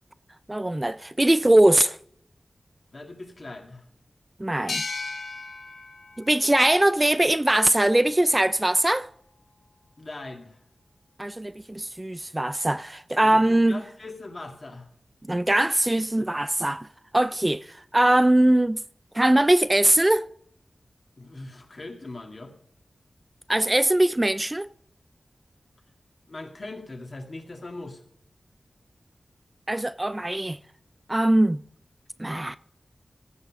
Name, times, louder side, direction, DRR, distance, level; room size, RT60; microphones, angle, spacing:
voice 1, 0.5-2.0 4.4-4.8 6.2-9.1 11.2-13.8 15.3-16.9 17.1-18.8 19.1-20.2 23.5-24.7 29.7-30.6 31.1-31.6 32.2-32.6, right 1 dB, 20° right, 0.3 m, -21 dB
voice 2, 2.9-3.8 10.0-10.6 13.2-14.9 21.2-22.5 26.3-28.0, left 2 dB, 50° left, 2.1 m, -40 dB
sound 1, 4.7-8.1, left 3 dB, 90° left, 2.0 m, -37 dB
15.0 x 5.5 x 6.4 m
wide cardioid pair, 80°, 0 cm